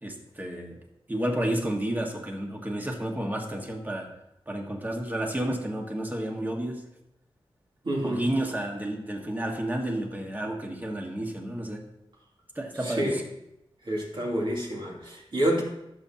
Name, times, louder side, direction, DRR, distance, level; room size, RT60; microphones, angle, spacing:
voice 1, 0.0-0.8 1.1-4.1 4.5-6.8 8.0-11.9 12.5-13.2, right 1 dB, 20° right, 1 dB, 1.6 m, -31 dB
voice 2, 7.8-8.3 12.8-13.2 13.8-15.6, right 1 dB, 55° right, -2 dB, 2.5 m, -28 dB
15.5 x 7.2 x 2.9 m, 0.87 s
wide cardioid pair, 100°, 10 cm